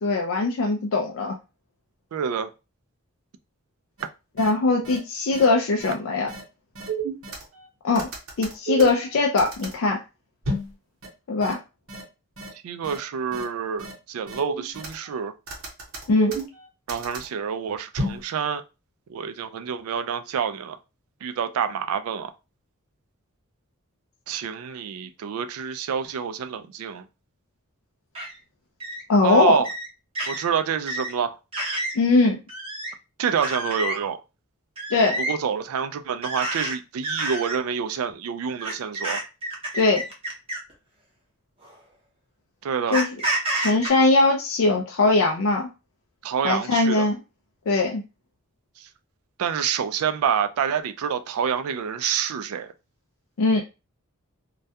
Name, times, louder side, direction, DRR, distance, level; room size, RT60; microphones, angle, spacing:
voice 1, 0.0-1.4 4.4-6.3 7.8-8.1 8.4-10.0 11.3-11.6 16.1-16.4 29.1-29.6 31.9-32.4 34.9-35.2 39.7-40.0 42.9-43.1 43.6-45.7 46.4-47.2 47.7-48.0 53.4-53.6, left 3 dB, 65° left, 0.4 m, -20 dB
voice 2, 2.1-2.5 12.6-15.3 16.9-18.6 19.1-20.8 21.2-22.3 24.3-27.1 29.2-29.7 30.3-31.3 33.2-34.2 35.2-39.2 42.6-43.0 46.2-47.1 48.8-48.9 49.4-52.7, right 7 dB, 80° right, 0.3 m, -27 dB
sound 1, 4.0-4.1 4.4-4.5 4.8-5.0 5.3-5.5 5.8-5.9 6.3-6.4 6.8-7.6 8.0-9.7 10.4-10.7 11.0-11.1 11.4-11.5 11.9-12.0 12.4-12.5 12.8-13.0 13.3-13.4 13.8-13.9 14.3-15.1 15.5-17.3 18.0-18.2, right 3 dB, 65° right, 0.9 m, -31 dB
sound 2, 28.1-28.3 28.8-29.0 29.6-29.9 30.1-30.4 30.9-31.1 31.5-32.0 32.5-32.9 33.4-34.0 34.8-35.3 36.2-36.7 37.0-37.6 38.6-40.7 41.6-41.7 42.9-43.9, right 1 dB, 25° right, 0.6 m, -29 dB
2.3 x 2.1 x 2.7 m
head